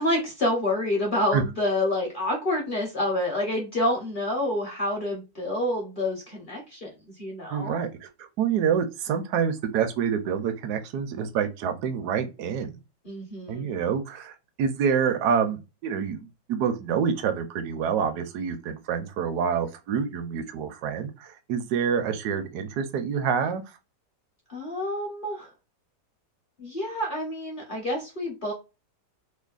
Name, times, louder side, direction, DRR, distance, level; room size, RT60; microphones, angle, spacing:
voice 1, 0.0-7.8 13.0-13.7 24.5-25.5 26.6-28.5, left 1 dB, 50° left, 0.6 m, -28 dB
voice 2, 7.5-12.8 13.5-23.6, right 7 dB, 70° right, 1.1 m, -27 dB
3.2 x 2.0 x 2.3 m
omnidirectional pair, 1.9 m